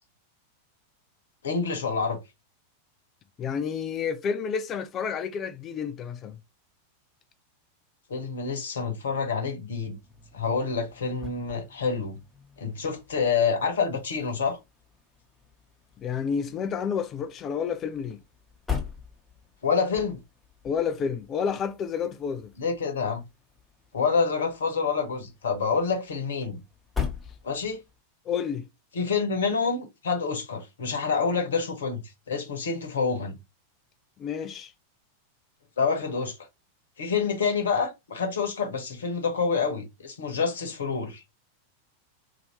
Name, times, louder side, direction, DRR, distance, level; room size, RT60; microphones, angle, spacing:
voice 1, 1.4-2.2 8.1-10.0 10.3-12.2 12.6-14.6 19.6-20.2 22.6-23.2 23.9-26.6 27.4-27.8 28.9-33.4 35.8-36.4 37.0-41.2, left 5 dB, 65° left, 1.0 m, -27 dB
voice 2, 3.4-6.4 16.0-18.2 20.6-22.5 28.3-28.7 34.2-34.7, left 6 dB, 30° left, 0.4 m, -30 dB
sound 1, 9.9-28.0, left 6 dB, 10° left, 1.0 m, -42 dB
2.8 x 2.7 x 2.9 m
figure-of-eight pair, 90°, 0 cm